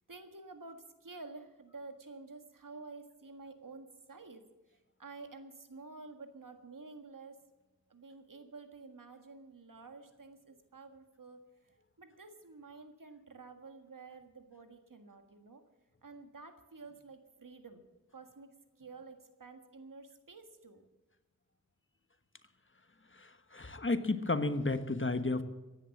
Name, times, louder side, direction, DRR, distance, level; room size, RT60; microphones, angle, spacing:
voice 1, 0.1-4.4 5.0-7.4 7.9-11.4 12.0-15.6 16.0-17.8 18.1-20.8, right 3 dB, 85° right, 7 dB, 1.8 m, -51 dB
voice 2, 23.1-25.4, left 2 dB, 40° left, 10 dB, 1.3 m, -32 dB
15.5 x 10.5 x 7.2 m, 1.1 s
wide cardioid pair, 55°, 32 cm